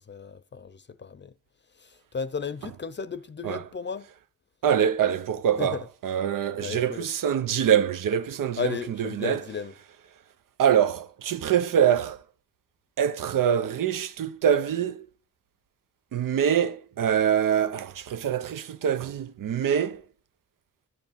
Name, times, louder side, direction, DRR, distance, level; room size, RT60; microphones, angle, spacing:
voice 1, 0.0-1.3 1.8-4.1 5.6-5.8 6.6-7.1 8.6-9.7, left 6 dB, 35° left, 0.6 m, -34 dB
voice 2, 4.6-5.8 6.0-9.4 10.6-12.2 13.0-15.1 16.1-20.0, right 9 dB, 85° right, 0.8 m, -24 dB
10.5 x 9.4 x 7.3 m
wide cardioid pair, 150°, 31 cm